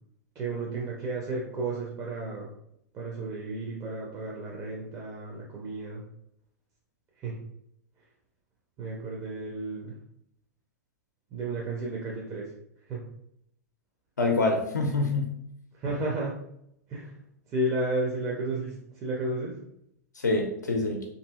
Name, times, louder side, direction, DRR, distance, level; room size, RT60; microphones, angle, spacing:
voice 1, 0.4-2.5 2.9-6.0 7.2-7.4 8.8-10.0 11.3-12.5 12.9-13.0 15.7-16.4 16.9-17.2 17.5-19.6, right 2 dB, 30° right, -3 dB, 0.6 m, -32 dB
voice 2, 14.2-15.3 20.2-21.0, left 3 dB, 90° left, 2 dB, 0.4 m, -26 dB
2.7 x 2.7 x 2.3 m, 0.74 s
hypercardioid pair, 110°, 9 cm